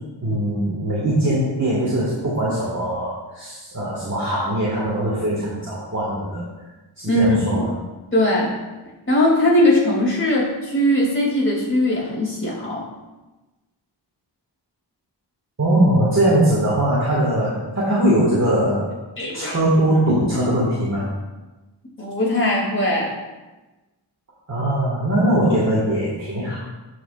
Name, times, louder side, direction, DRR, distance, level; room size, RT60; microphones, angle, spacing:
voice 1, 0.2-6.5 7.0-7.7 15.6-18.9 19.3-21.1 24.5-26.6, right 1 dB, 40° right, -7 dB, 1.9 m, -21 dB
voice 2, 7.1-7.6 8.1-8.6 9.1-12.9 19.2-19.6 22.0-23.1, left 1 dB, 25° left, -4 dB, 2.7 m, -20 dB
13.5 x 5.0 x 2.5 m, 1.1 s
wide cardioid pair, 85°, 45 cm